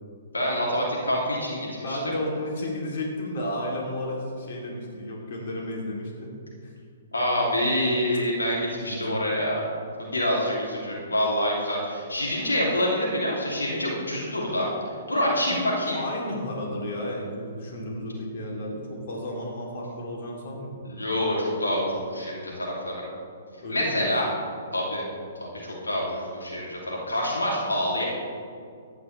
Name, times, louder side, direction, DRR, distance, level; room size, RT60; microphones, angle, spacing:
voice 1, 0.3-2.1 7.1-9.6 10.0-14.7 15.1-16.0 20.8-23.0 23.7-24.3 24.7-25.0 25.4-28.0, left 1 dB, 85° left, -4 dB, 2.6 m, -26 dB
voice 2, 1.7-6.3 6.6-6.7 8.7-9.2 15.9-20.8 23.6-24.1, left 1 dB, 55° left, -2 dB, 2.8 m, -33 dB
15.0 x 9.9 x 3.2 m, 2.3 s
figure-of-eight pair, 120°, 0 cm